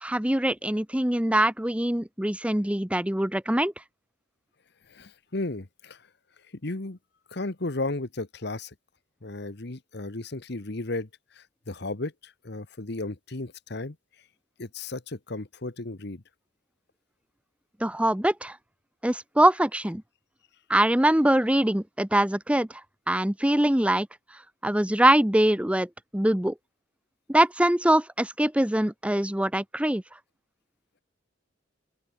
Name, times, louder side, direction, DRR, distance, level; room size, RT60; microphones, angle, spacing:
voice 1, 0.0-3.7 17.8-18.6 19.0-20.0 20.7-22.7 23.1-24.1 24.6-26.5 27.3-30.0, right 1 dB, 5° right, 0.8 m, -23 dB
voice 2, 4.9-6.0 6.6-7.0 7.3-8.7 9.2-14.0 14.6-16.2, left 2 dB, 55° left, 1.3 m, -34 dB
open air
head